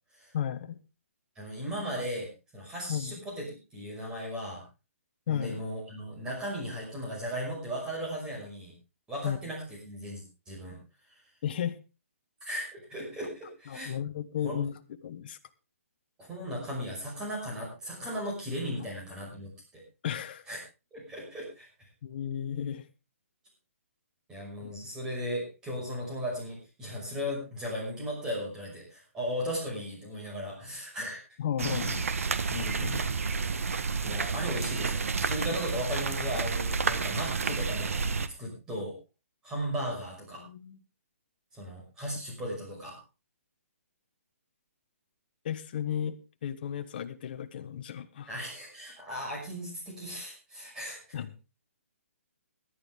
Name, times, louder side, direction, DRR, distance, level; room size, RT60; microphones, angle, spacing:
voice 1, 0.3-0.8 2.9-3.2 5.3-5.6 9.2-9.4 11.4-11.8 13.7-15.4 20.0-20.4 22.0-22.8 24.6-24.7 31.4-32.0 32.5-33.2 40.4-40.8 45.4-48.3 51.1-51.3, left 9 dB, 40° left, 9 dB, 1.2 m, -34 dB
voice 2, 1.4-4.6 5.3-8.7 9.1-10.8 11.1-11.2 12.4-13.9 14.4-14.6 16.2-19.8 20.5-20.6 20.9-21.7 24.3-31.2 32.7-32.8 34.0-38.0 38.4-38.9 39.4-40.4 41.5-43.0 48.3-51.0, equal, 10° right, -3 dB, 5.6 m, -36 dB
sound 1, 31.6-38.3, right 5 dB, 70° right, 1.3 m, -30 dB
17.5 x 11.5 x 3.6 m, 0.30 s
hypercardioid pair, 165°, 8 cm